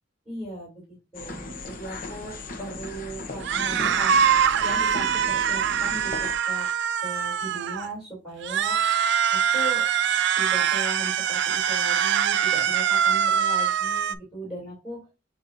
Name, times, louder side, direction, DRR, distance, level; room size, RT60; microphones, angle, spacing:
voice 1, 0.2-0.7 1.1-4.1 4.6-6.7 7.0-8.8 9.3-9.8 10.4-15.0, right 1 dB, 5° right, -7 dB, 3.0 m, -37 dB
sound 1, 1.1-6.4, left 2 dB, 45° left, 0.8 m, -37 dB
sound 2, 3.4-7.9 8.4-14.1, right 8 dB, 65° right, 0.4 m, -23 dB
7.5 x 2.6 x 2.6 m, 0.28 s
head